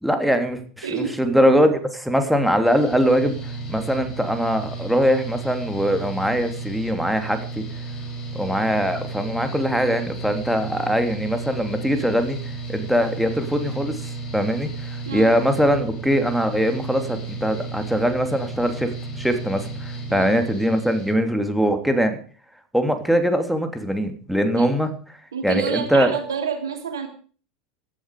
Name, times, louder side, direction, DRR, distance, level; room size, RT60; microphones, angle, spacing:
voice 1, 0.0-7.6 8.3-12.4 12.7-22.2 22.7-24.9 25.4-26.1, equal, ahead, 7 dB, 3.2 m, -22 dB
voice 2, 0.8-1.2 15.0-15.3 20.1-20.3 24.5-24.7 25.3-27.1, right 6 dB, 70° right, 7 dB, 3.2 m, -28 dB
Mechanical fan, 2.6-21.1, right 3 dB, 30° left, 7.9 m, -33 dB
17.0 x 13.0 x 5.0 m, 0.41 s
figure-of-eight pair, 80°, 2 cm